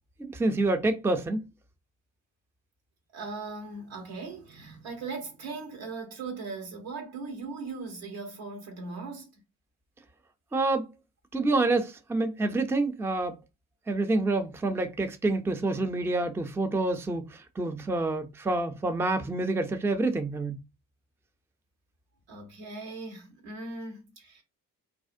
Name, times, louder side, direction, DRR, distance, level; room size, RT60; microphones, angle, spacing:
voice 1, 0.2-1.4 10.5-10.9 11.3-13.4 13.9-20.6, right 2 dB, 5° right, 0.4 m, -27 dB
voice 2, 3.1-9.3 22.3-24.4, right 3 dB, 85° right, 1.0 m, -39 dB
2.5 x 2.0 x 2.5 m
supercardioid pair, 55°, 38 cm